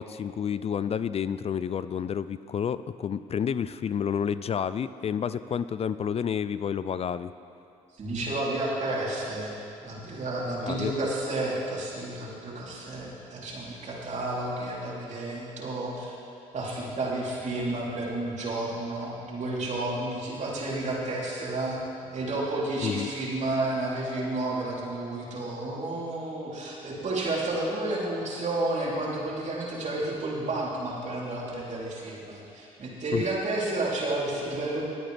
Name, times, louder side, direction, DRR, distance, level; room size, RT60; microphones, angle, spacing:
voice 1, 0.0-7.3 10.6-10.9 22.8-23.1 33.1-33.3, left 8 dB, 35° left, 14 dB, 0.4 m, -30 dB
voice 2, 7.9-16.1 16.5-21.8 22.1-34.8, right 2 dB, 45° right, -5 dB, 3.3 m, -31 dB
19.5 x 8.7 x 3.4 m, 2.6 s
hypercardioid pair, 60°, 17 cm